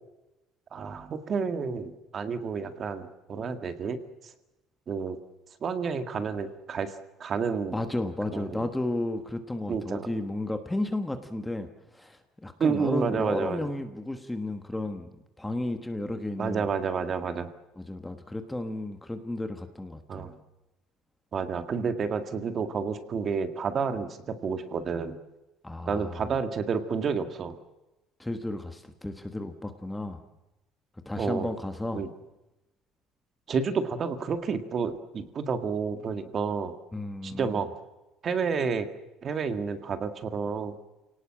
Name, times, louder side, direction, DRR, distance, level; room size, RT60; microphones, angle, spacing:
voice 1, 0.7-4.0 4.9-5.2 5.6-6.9 7.2-7.8 8.3-8.7 9.7-10.1 12.6-13.7 16.4-17.5 20.1-20.3 21.3-25.2 25.9-27.6 31.2-31.5 31.9-32.1 33.5-36.7 37.2-37.7 38.2-38.9 39.2-40.7, right 5 dB, 30° right, 9 dB, 1.8 m, -30 dB
voice 2, 7.7-15.1 15.4-16.7 17.8-20.3 25.6-26.2 28.2-30.2 31.0-32.0 36.9-37.6, left 1 dB, 5° left, 7 dB, 1.3 m, -33 dB
29.0 x 18.5 x 7.5 m, 0.99 s
cardioid pair, 170°, 0 cm